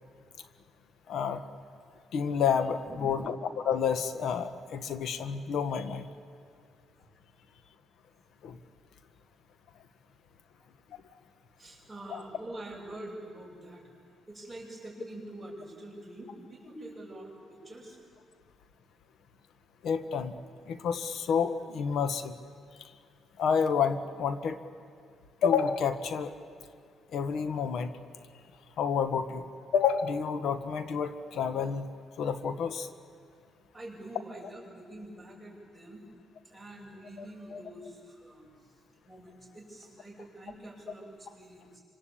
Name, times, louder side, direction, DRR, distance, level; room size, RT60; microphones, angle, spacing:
voice 1, 1.1-1.4 2.1-6.1 8.4-8.6 12.1-12.2 19.8-20.3 20.7-22.3 22.8-22.9 23.4-24.6 25.4-26.3 27.1-27.9 28.8-29.4 29.7-31.9 32.2-32.9 34.4-34.5 37.2-37.6, left 6 dB, 70° left, 10 dB, 1.5 m, -29 dB
voice 2, 2.9-3.3 10.6-10.7 11.6-13.9 14.3-18.0 33.7-36.0 36.4-38.7 39.0-41.8, right 1 dB, ahead, -10 dB, 8.0 m, -46 dB
26.0 x 26.0 x 8.6 m, 2.3 s
cardioid pair, 90°, 0 cm